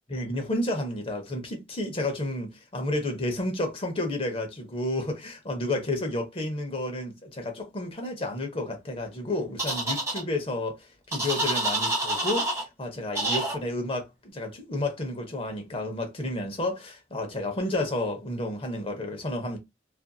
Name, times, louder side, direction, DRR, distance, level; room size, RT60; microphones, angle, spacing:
voice 1, 0.1-19.6, left 1 dB, 30° left, 0.7 m, -31 dB
sound 1, 9.6-10.2 11.1-12.6 13.2-13.6, right 1 dB, 15° right, 1.2 m, -27 dB
2.6 x 2.5 x 2.3 m
head